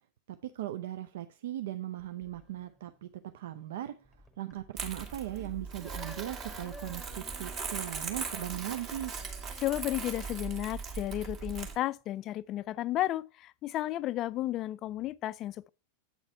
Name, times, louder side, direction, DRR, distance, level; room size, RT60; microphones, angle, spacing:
voice 1, 0.3-3.1 3.3-3.9 4.4-9.1, right 13 dB, 60° right, 0.4 m, -38 dB
sound 1, 2.0-12.0, left 1 dB, 5° left, 1.0 m, -54 dB
Crumpling crinkling, 4.8-11.8, right 5 dB, 35° right, 1.6 m, -39 dB
voice 2, 9.6-15.7, left 14 dB, 35° left, 0.3 m, -33 dB
8.1 x 4.0 x 4.4 m
figure-of-eight pair, 90°, 0 cm